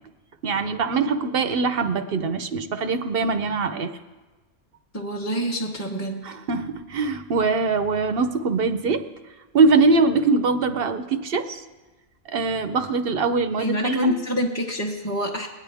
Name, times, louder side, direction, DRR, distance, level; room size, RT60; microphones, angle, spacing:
voice 1, 0.4-3.9 6.2-9.0 9.5-11.6 12.3-14.2, right 4 dB, 55° right, 9 dB, 0.8 m, -22 dB
voice 2, 4.9-6.2 13.6-15.5, equal, 15° left, -4 dB, 1.0 m, -26 dB
21.5 x 9.4 x 3.5 m, 1.2 s
omnidirectional pair, 1.4 m